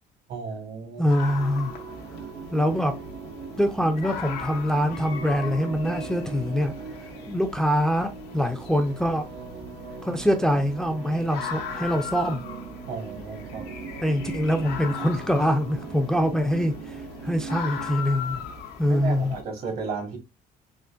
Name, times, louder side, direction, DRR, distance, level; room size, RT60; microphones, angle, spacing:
voice 1, 0.3-1.0 12.9-13.7 18.9-20.2, right 4 dB, 65° right, 1.4 m, -34 dB
sound 1, 1.0-19.4, left 6 dB, 85° left, 0.8 m, -39 dB
voice 2, 1.0-1.7 2.5-2.9 3.6-6.7 7.3-9.2 10.0-12.4 14.0-18.4 18.8-19.3, equal, 5° left, 0.4 m, -24 dB
sound 2, 1.2-18.0, right 6 dB, 85° right, 0.6 m, -40 dB
3.7 x 2.5 x 2.5 m
cardioid pair, 110°, 17 cm